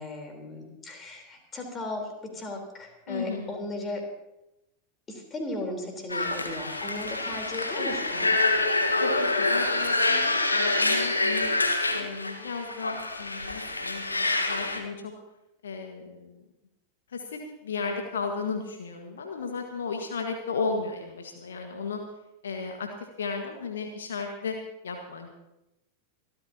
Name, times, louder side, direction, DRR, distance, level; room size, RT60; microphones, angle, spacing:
voice 1, 0.0-4.0 5.1-8.3, left 1 dB, 20° left, 3 dB, 3.8 m, -36 dB
voice 2, 3.1-3.5 7.7-8.0 9.0-11.5 11.9-15.1 15.6-16.4 17.1-22.0 22.4-22.9 23.2-24.5 24.8-25.3, left 4 dB, 65° left, 3 dB, 1.6 m, -34 dB
sound 1, 6.1-14.8, left 2 dB, 80° left, 1.4 m, -26 dB
25.5 x 13.5 x 2.9 m, 0.91 s
figure-of-eight pair, 90°, 0 cm